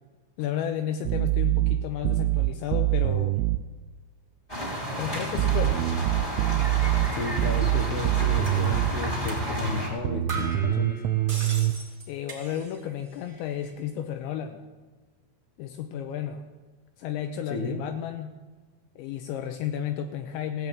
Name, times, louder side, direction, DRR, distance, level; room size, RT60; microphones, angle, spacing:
voice 1, 0.4-3.4 5.0-5.8 12.1-14.6 15.6-16.5 17.0-18.4 19.0-20.7, left 9 dB, 85° left, 6 dB, 2.8 m, -32 dB
sound 1, 1.1-3.6 5.4-9.0 10.1-11.7, right 17 dB, 85° right, 2.8 m, -24 dB
sound 2, 4.5-9.9, right 1 dB, 10° left, 2.4 m, -31 dB
voice 2, 7.1-11.0 17.5-17.8, left 4 dB, 65° left, 5 dB, 2.9 m, -33 dB
sound 3, 8.4-8.7 9.3-9.4 9.8-9.9 10.3-12.9 13.2-13.8, right 4 dB, 30° right, 0.9 m, -39 dB
16.5 x 9.3 x 8.7 m, 1.4 s
omnidirectional pair, 5.9 m